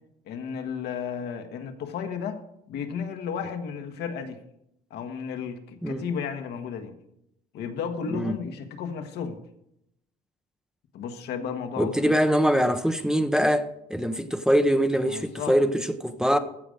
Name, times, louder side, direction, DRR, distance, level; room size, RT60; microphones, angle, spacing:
voice 1, 0.3-2.4 2.7-4.4 4.9-6.9 7.5-9.4 10.9-12.4 15.1-15.6, left 6 dB, 75° left, 1.4 m, -33 dB
voice 2, 11.8-16.4, equal, 5° right, 0.7 m, -23 dB
15.0 x 5.1 x 6.5 m
cardioid pair, 110°, 17 cm